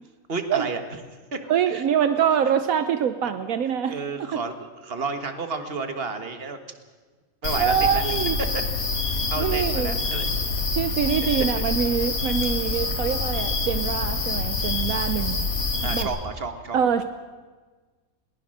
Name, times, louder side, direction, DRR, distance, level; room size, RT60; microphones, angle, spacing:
voice 1, 0.3-0.8 1.3-1.4 1.7-1.8 3.9-6.6 7.4-8.0 9.0-10.3 11.6-11.7 15.8-16.8, right 4 dB, 45° right, 7 dB, 1.8 m, -31 dB
voice 2, 1.5-4.4 7.5-8.4 9.4-10.0 10.7-15.5 15.8-16.1 16.7-17.0, right 8 dB, 75° right, 10 dB, 1.2 m, -24 dB
sound 1, 7.4-16.0, left 3 dB, 90° left, 2.3 m, -26 dB
21.0 x 19.5 x 6.6 m, 1.4 s
omnidirectional pair, 1.5 m